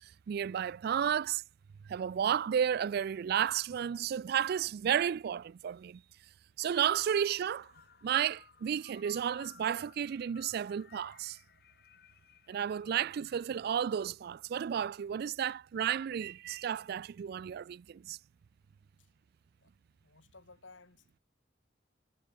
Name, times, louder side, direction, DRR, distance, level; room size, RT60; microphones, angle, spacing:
voice 1, 0.0-1.4 1.9-6.0 6.6-7.7 8.0-11.4 12.5-18.2, right 9 dB, 55° right, 0.3 m, -32 dB
sound 1, 6.6-13.5, left 6 dB, 55° left, 1.5 m, -59 dB
voice 2, 20.0-21.2, left 3 dB, 75° left, 2.3 m, -57 dB
head